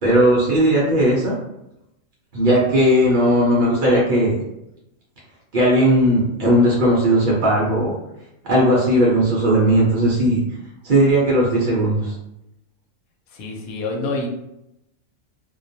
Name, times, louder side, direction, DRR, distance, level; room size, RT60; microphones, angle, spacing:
voice 1, 0.0-1.3 2.3-4.3 5.5-7.9 8.5-10.4 10.8-12.1, right 1 dB, 60° right, -4 dB, 0.5 m, -17 dB
voice 2, 13.3-14.3, left 2 dB, 85° left, 1 dB, 1.0 m, -27 dB
2.3 x 2.2 x 2.6 m, 0.86 s
omnidirectional pair, 1.5 m